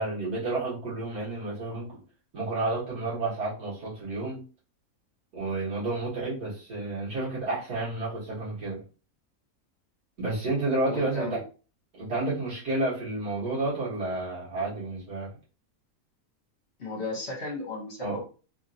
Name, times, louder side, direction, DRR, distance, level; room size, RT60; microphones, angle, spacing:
voice 1, 0.0-2.0 2.3-4.4 5.3-8.8 10.2-11.4 11.9-15.3 18.0-18.2, right 2 dB, 85° right, 2.5 m, -30 dB
voice 2, 10.9-11.4 16.8-18.2, left 2 dB, 50° left, 1.2 m, -35 dB
4.3 x 2.8 x 2.6 m
omnidirectional pair, 1.6 m